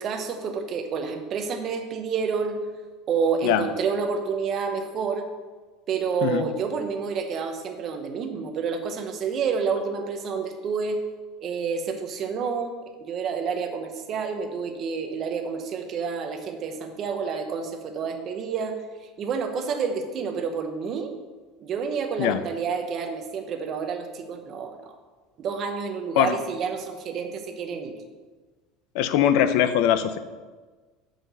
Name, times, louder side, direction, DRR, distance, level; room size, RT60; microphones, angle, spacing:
voice 1, 0.0-2.6 3.1-5.3 5.9-11.0 11.4-12.7 13.0-18.8 19.2-21.1 21.6-24.9 25.4-28.0, right 5 dB, 35° right, 5 dB, 0.9 m, -29 dB
voice 2, 28.9-30.2, left 10 dB, 65° left, 11 dB, 0.6 m, -21 dB
5.9 x 5.4 x 6.7 m, 1.3 s
cardioid pair, 155°, 0 cm